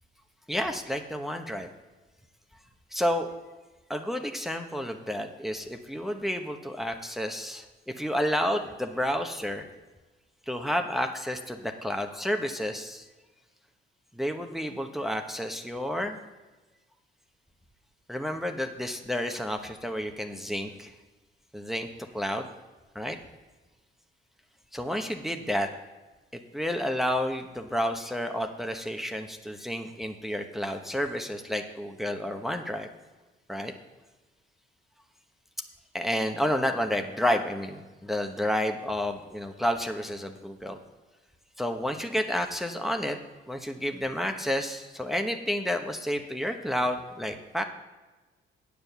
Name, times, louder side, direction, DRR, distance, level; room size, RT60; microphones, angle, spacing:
voice 1, 0.5-1.7 2.9-3.3 3.9-9.6 10.5-13.0 14.1-16.2 18.1-20.9 21.5-21.9 22.1-22.5 22.9-23.2 24.7-25.7 26.3-32.9 33.5-33.7 35.9-40.8 41.6-43.2 43.5-47.6, equal, ahead, 4 dB, 0.9 m, -30 dB
9.6 x 6.9 x 6.9 m, 1.2 s
cardioid pair, 90°, 20 cm